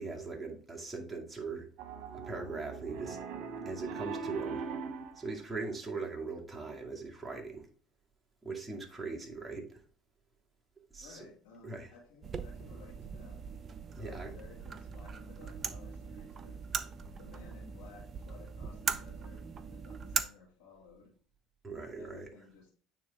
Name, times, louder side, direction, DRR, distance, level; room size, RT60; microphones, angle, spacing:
voice 1, 0.0-1.7 2.1-3.2 3.7-4.6 5.2-7.7 8.4-9.8 10.9-11.3 11.6-12.0 13.9-14.3 21.6-22.3, right 4 dB, 10° right, 2.2 m, -40 dB
Piano, 1.8-5.2, right 5 dB, 60° right, 1.1 m, -40 dB
voice 2, 2.3-2.6 11.0-13.4 14.0-16.6 17.2-21.1 21.7-22.7, left 4 dB, 75° left, 2.4 m, -56 dB
sound 1, 12.2-20.2, right 6 dB, 40° right, 0.6 m, -40 dB
9.1 x 3.7 x 3.6 m
hypercardioid pair, 75°, 0 cm